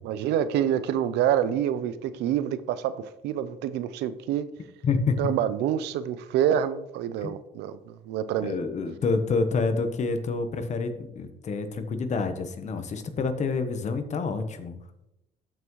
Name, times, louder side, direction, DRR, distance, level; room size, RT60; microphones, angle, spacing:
voice 1, 0.0-4.5 5.2-8.6, right 10 dB, 85° right, 0.6 m, -27 dB
voice 2, 4.8-5.3 7.2-7.3 8.4-14.8, left 4 dB, 45° left, 1.1 m, -28 dB
13.5 x 5.9 x 3.1 m
cardioid pair, 110°, 17 cm